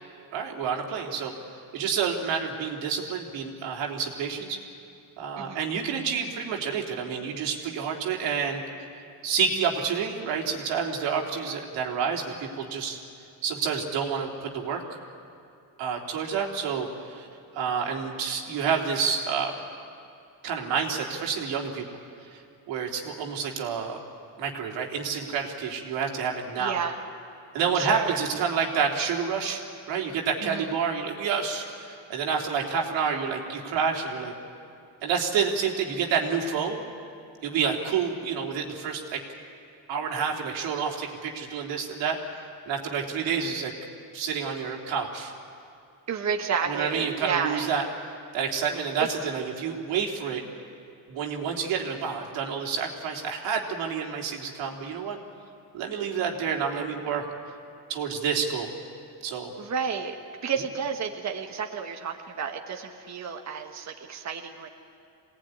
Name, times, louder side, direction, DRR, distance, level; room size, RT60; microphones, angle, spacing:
voice 1, 0.3-1.3 1.7-4.6 5.2-8.6 9.2-13.0 13.4-14.8 15.8-17.3 17.5-19.5 20.4-21.8 22.3-22.4 22.7-24.0 24.4-26.8 27.5-29.6 29.9-34.3 35.0-36.8 37.4-39.2 39.9-42.2 42.7-43.7 44.1-45.3 46.7-47.8 48.3-50.4 51.1-55.2 55.7-57.2 57.9-58.7 59.2-59.5, right 6 dB, 90° right, 0 dB, 3.3 m, -29 dB
voice 2, 26.6-27.0 27.7-28.2 30.4-30.7 46.1-47.7 49.0-49.1 59.6-60.1 60.4-64.7, right 6 dB, 40° right, 3 dB, 1.5 m, -31 dB
24.0 x 18.5 x 9.7 m, 2.6 s
cardioid pair, 110°, 44 cm